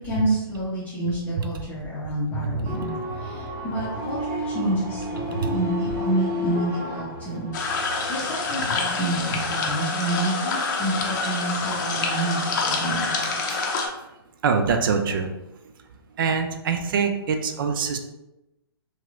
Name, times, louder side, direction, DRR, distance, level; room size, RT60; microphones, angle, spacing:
voice 1, 0.0-7.5 7.8-13.2, right 1 dB, 10° left, -11 dB, 0.9 m, -28 dB
sound 1, 2.3-8.1, equal, 25° right, 0.8 m, -31 dB
sound 2, 7.5-13.9, left 3 dB, 50° left, 0.6 m, -27 dB
voice 2, 14.4-15.3 16.2-18.0, right 5 dB, 55° right, 6 dB, 0.4 m, -24 dB
3.0 x 2.9 x 2.5 m, 0.95 s
hypercardioid pair, 135°, 13 cm